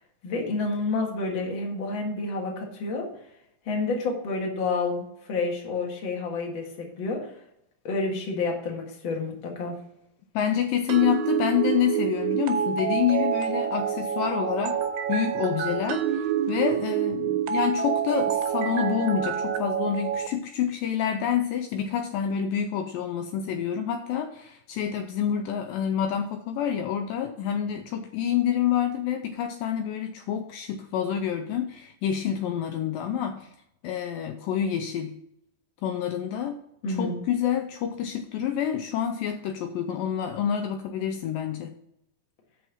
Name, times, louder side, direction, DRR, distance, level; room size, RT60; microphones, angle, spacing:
voice 1, 0.2-3.1 3.6-7.3 7.8-9.8 36.8-37.2, left 3 dB, 45° left, 0 dB, 1.7 m, -29 dB
voice 2, 10.4-14.8 15.1-33.5 33.8-35.2 35.8-36.6 36.9-41.7, left 9 dB, 90° left, 6 dB, 1.9 m, -28 dB
sound 1, 10.9-20.3, right 8 dB, 90° right, 2.9 m, -27 dB
6.3 x 6.2 x 7.1 m, 0.76 s
omnidirectional pair, 4.7 m